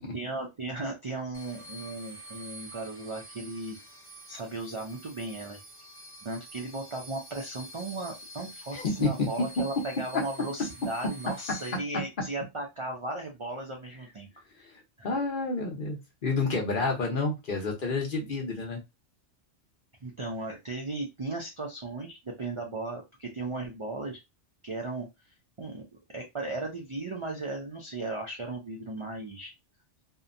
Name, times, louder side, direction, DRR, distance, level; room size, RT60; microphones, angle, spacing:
voice 1, 0.1-3.8 4.3-5.6 6.2-14.3 14.6-14.7 15.0-15.1 16.8-16.9 18.2-18.3 20.0-24.2 24.6-25.1 25.6-25.8 26.1-29.5, right 2 dB, 50° right, 0 dB, 0.3 m, -36 dB
sound 1, 1.3-11.8, equal, 20° left, 0.4 m, -48 dB
voice 2, 8.7-9.1 15.0-18.8, left 3 dB, 50° left, 1 dB, 0.9 m, -29 dB
2.7 x 2.1 x 2.5 m, 0.22 s
omnidirectional pair, 1.2 m